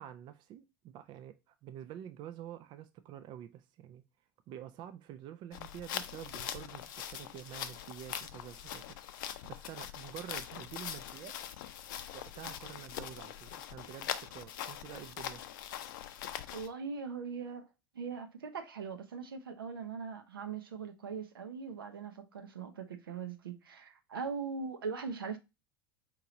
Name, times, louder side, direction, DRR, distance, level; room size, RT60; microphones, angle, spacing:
voice 1, 0.0-4.0 4.5-11.4 12.1-15.4, right 11 dB, 40° right, 0.4 m, -48 dB
sound 1, 5.5-16.7, left 10 dB, 60° left, 0.5 m, -42 dB
voice 2, 16.5-17.7 17.9-25.4, right 5 dB, 75° right, 0.7 m, -40 dB
4.5 x 2.9 x 3.7 m
figure-of-eight pair, 75°, 12 cm